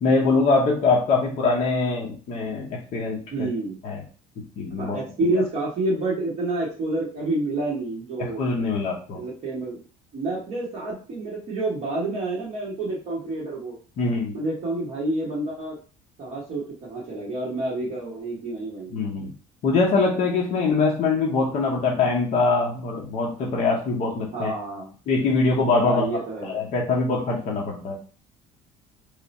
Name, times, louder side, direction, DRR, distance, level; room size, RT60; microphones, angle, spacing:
voice 1, 0.0-3.5 3.8-4.0 4.6-5.0 8.2-9.2 14.0-14.3 18.9-19.3 19.6-24.5 25.1-28.0, left 3 dB, 40° left, -2 dB, 0.7 m, -23 dB
voice 2, 3.3-3.8 4.7-8.4 9.1-9.8 10.1-13.8 14.3-15.8 16.2-19.0 24.3-24.9 25.8-26.6, right 2 dB, 40° right, -6 dB, 1.0 m, -28 dB
3.2 x 2.3 x 4.0 m, 0.38 s
cardioid pair, 170°, 17 cm